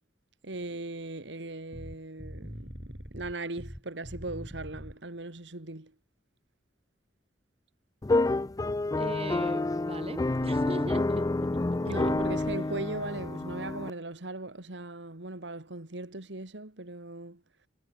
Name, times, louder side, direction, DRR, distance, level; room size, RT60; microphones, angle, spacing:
voice 1, 0.4-5.9 11.8-17.4, right 2 dB, 75° right, 2.3 m, -38 dB
sound 1, 1.7-5.0 10.3-10.7 12.1-12.6, equal, 5° left, 5.1 m, -43 dB
sound 2, 8.0-13.9, left 2 dB, 20° left, 0.4 m, -29 dB
voice 2, 9.0-12.1, right 1 dB, 35° right, 5.0 m, -40 dB
head